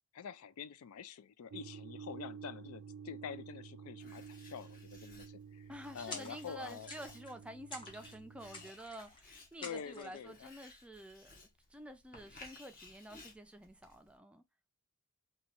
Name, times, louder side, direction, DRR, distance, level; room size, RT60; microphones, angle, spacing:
voice 1, 0.1-5.7 5.9-6.9 9.6-10.5, left 7 dB, 80° left, 0.4 m, -47 dB
sound 1, 1.5-8.7, right 6 dB, 85° right, 0.4 m, -51 dB
Writing, 4.0-14.2, left 3 dB, 45° left, 1.2 m, -59 dB
voice 2, 5.7-11.4 11.7-14.4, right 1 dB, 5° right, 0.4 m, -50 dB
sound 2, 6.1-6.6 6.9-7.4 7.7-8.2 8.5-9.2 9.6-10.2, left 3 dB, 25° left, 0.9 m, -49 dB
4.0 x 2.3 x 2.9 m
head